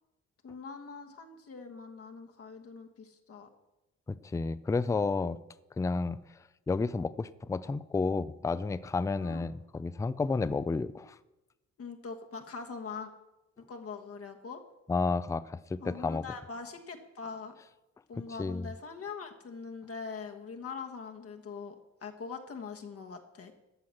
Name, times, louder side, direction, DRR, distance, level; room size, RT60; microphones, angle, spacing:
voice 1, 0.4-3.5 9.2-9.4 11.8-13.1 13.7-14.6 15.8-17.5 18.1-21.7 22.0-23.5, left 5 dB, 50° left, 4 dB, 1.3 m, -42 dB
voice 2, 4.1-5.4 5.8-6.2 6.7-11.2 14.9-16.2 18.4-18.7, left 4 dB, 10° left, 16 dB, 0.4 m, -31 dB
13.5 x 5.7 x 6.4 m, 0.96 s
cardioid pair, 90°, 30 cm